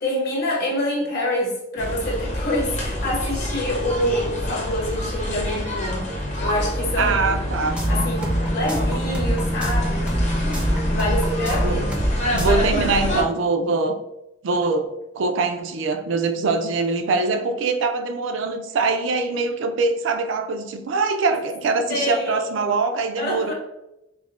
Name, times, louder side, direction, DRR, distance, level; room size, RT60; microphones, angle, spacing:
voice 1, 0.0-7.2 7.9-10.1 10.9-12.0 21.9-22.5 23.2-23.5, left 1 dB, 55° left, -3 dB, 1.1 m, -26 dB
sound 1, 1.8-13.2, equal, 40° left, 0.7 m, -26 dB
voice 2, 7.0-7.7 11.6-11.9 12.3-13.9 14.4-14.9 15.2-23.5, right 3 dB, 70° right, 5 dB, 0.4 m, -23 dB
sound 2, 7.5-12.1 12.4-12.6, right 1 dB, 5° right, 0.4 m, -25 dB
4.5 x 2.0 x 2.4 m, 0.90 s
head